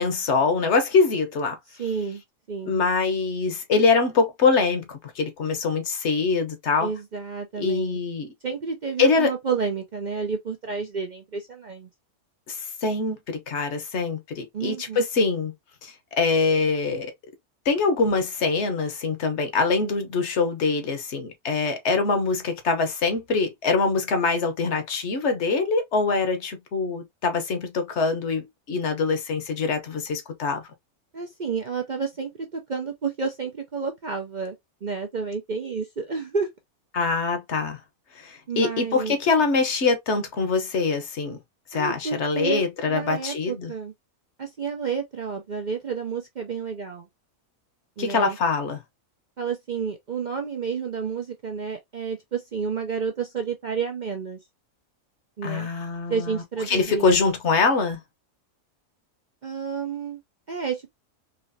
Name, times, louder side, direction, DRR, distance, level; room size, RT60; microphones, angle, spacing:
voice 1, 0.0-1.6 2.7-6.9 7.6-8.3 9.0-9.3 12.5-15.5 15.8-17.1 17.6-30.6 36.9-37.8 38.2-41.4 41.7-43.7 48.0-48.8 55.4-58.0, left 4 dB, 55° left, 1.2 m, -24 dB
voice 2, 1.7-2.2 2.5-2.8 6.8-8.0 8.4-11.9 14.5-15.1 31.1-34.6 34.8-36.5 38.5-39.2 41.7-43.9 44.4-47.0 48.0-48.4 49.4-54.4 55.4-55.7 56.1-57.1 59.4-60.2 60.5-60.9, right 5 dB, 50° right, 0.5 m, -30 dB
4.1 x 3.0 x 2.7 m
omnidirectional pair, 1.5 m